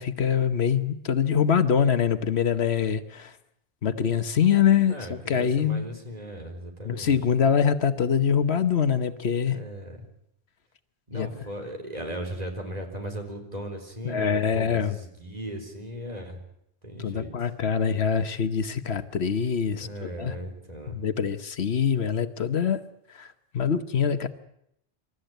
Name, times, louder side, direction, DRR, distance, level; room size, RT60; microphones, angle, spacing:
voice 1, 0.0-3.3 3.8-5.8 6.8-9.6 11.1-11.3 14.0-15.0 17.0-20.3 20.9-22.8 23.1-24.3, left 7 dB, 75° left, 11 dB, 1.3 m, -24 dB
voice 2, 4.9-7.2 9.4-10.1 11.1-16.4 16.8-17.5 19.8-21.0, equal, 35° right, 3 dB, 4.1 m, -37 dB
27.0 x 13.5 x 9.1 m, 0.77 s
omnidirectional pair, 1.1 m